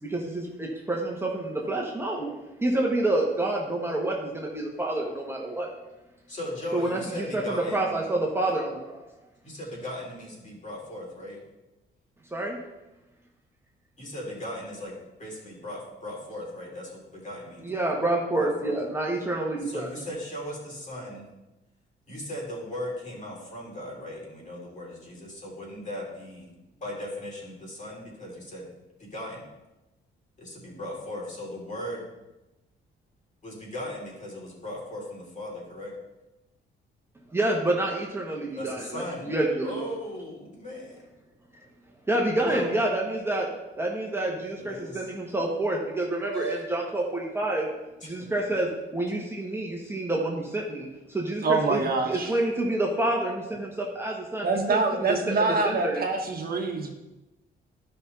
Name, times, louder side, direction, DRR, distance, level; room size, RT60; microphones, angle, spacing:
voice 1, 0.0-2.3 2.6-5.7 6.7-9.0 12.3-12.6 17.6-19.9 37.3-39.7 42.1-43.5 43.8-47.7 48.0-56.0, right 1 dB, 10° right, -2 dB, 1.5 m, -28 dB
voice 2, 6.3-8.0 9.4-11.4 14.0-17.9 18.4-18.8 19.6-21.3 22.1-28.7 29.0-29.5 30.4-32.1 33.4-35.9 38.5-39.3 39.6-41.0 42.3-42.7 44.6-45.1 46.2-46.6 48.0-48.1, left 1 dB, 40° left, -3 dB, 3.7 m, -37 dB
voice 3, 51.4-52.3 54.4-56.9, right 3 dB, 50° right, 2 dB, 1.3 m, -25 dB
11.5 x 5.6 x 4.2 m, 1.0 s
cardioid pair, 90°, 20 cm